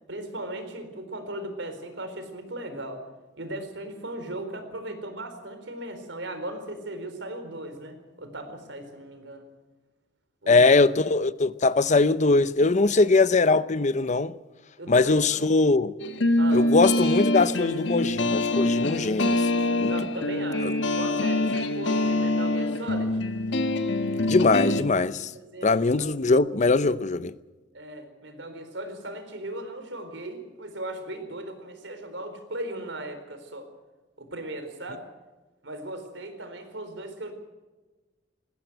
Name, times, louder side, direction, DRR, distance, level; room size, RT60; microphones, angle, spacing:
voice 1, 0.1-3.0 3.4-9.5 10.4-10.7 12.9-13.1 14.8-15.4 16.4-16.6 19.9-23.2 25.3-26.0 27.7-33.7 34.2-35.1 35.6-37.3, right 1 dB, 75° right, 4.3 m, -37 dB
voice 2, 10.5-14.3 14.9-15.9 16.5-19.4 19.8-19.9 20.6-20.7 24.3-25.3 25.6-27.3, left 3 dB, 40° left, 0.7 m, -21 dB
sound 1, 16.0-24.8, left 1 dB, 70° left, 1.4 m, -25 dB
20.0 x 16.5 x 8.0 m
head